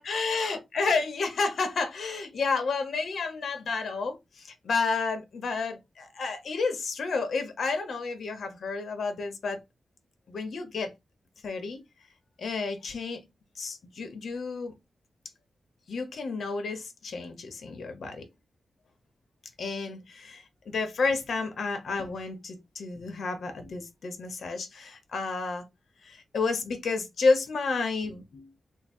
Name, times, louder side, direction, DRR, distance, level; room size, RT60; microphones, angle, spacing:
voice 1, 0.0-9.6 10.3-10.9 11.4-11.8 12.4-13.2 13.6-14.7 15.9-18.3 19.6-25.7 26.0-28.5, left 4 dB, 70° left, 0.9 m, -31 dB
3.6 x 2.0 x 4.2 m
wide cardioid pair, 125°, 0 cm